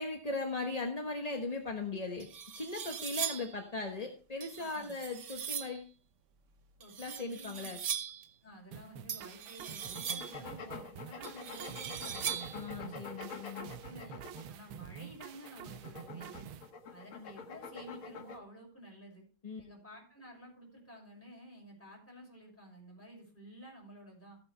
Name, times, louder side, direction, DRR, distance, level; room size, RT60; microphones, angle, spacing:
voice 1, 0.0-2.3 2.5-5.9 7.0-7.8 12.5-13.7 19.4-19.6, left 3 dB, 30° left, 3 dB, 0.8 m, -38 dB
sound 1, 1.7-1.8 2.2-3.6 4.4-5.8 6.8-8.3 9.1-10.5 11.2-12.6, right 8 dB, 50° right, 0.9 m, -40 dB
voice 2, 4.6-4.9 6.8-7.7 8.4-12.4 13.6-16.5 16.9-19.3 19.6-24.4, equal, 5° left, -2 dB, 5.9 m, -52 dB
sound 2, 8.7-16.7, right 8 dB, 85° right, 1.6 m, -48 dB
sound 3, 9.8-14.7 15.3-18.4, left 4 dB, 80° left, 2.5 m, -46 dB
15.0 x 9.0 x 3.3 m, 0.37 s
omnidirectional pair, 2.3 m